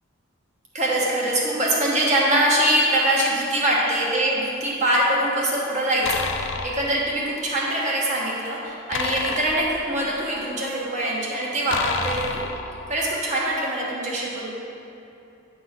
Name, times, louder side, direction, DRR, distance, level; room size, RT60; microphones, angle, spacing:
voice 1, 0.7-12.4 12.9-14.5, right 1 dB, 35° right, -5 dB, 1.2 m, -23 dB
sound 1, 6.0-6.9 8.9-10.4 11.7-13.1, left 5 dB, 75° left, 0.5 m, -30 dB
8.3 x 3.7 x 5.7 m, 2.8 s
head